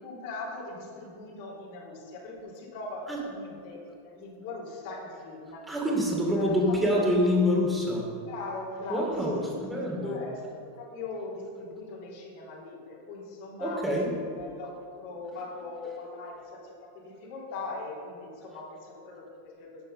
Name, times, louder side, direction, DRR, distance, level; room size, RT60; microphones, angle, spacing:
voice 1, 0.0-5.6 6.3-7.0 8.2-13.9 14.3-19.8, left 3 dB, 50° left, -4 dB, 3.5 m, -40 dB
voice 2, 5.7-8.1 8.9-10.2 13.6-14.1, left 1 dB, 10° right, -3 dB, 2.8 m, -26 dB
12.5 x 8.7 x 5.5 m, 2.4 s
figure-of-eight pair, 85°, 0 cm